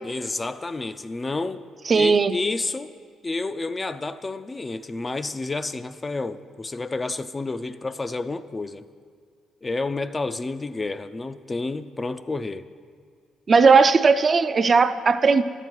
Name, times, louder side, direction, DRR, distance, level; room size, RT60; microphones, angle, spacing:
voice 1, 0.0-1.6 1.9-2.9 3.2-8.8 9.6-12.7, left 3 dB, 25° left, 11 dB, 0.4 m, -30 dB
voice 2, 1.9-2.3 13.5-15.4, right 4 dB, 40° right, 10 dB, 0.4 m, -17 dB
12.0 x 7.9 x 4.6 m, 2.1 s
cardioid pair, 75°, 0 cm